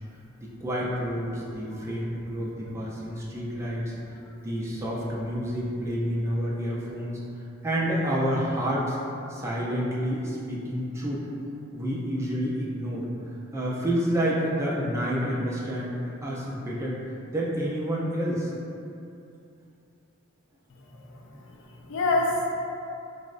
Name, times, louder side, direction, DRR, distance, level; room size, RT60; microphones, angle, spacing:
voice 1, 0.4-3.9 4.4-7.2 7.6-9.0 9.3-11.2 11.7-13.1 13.5-17.0 17.3-18.5, equal, 15° right, -5 dB, 0.4 m, -29 dB
voice 2, 20.9-22.5, left 2 dB, 65° left, 0 dB, 0.4 m, -28 dB
4.4 x 2.0 x 2.4 m, 2.7 s
head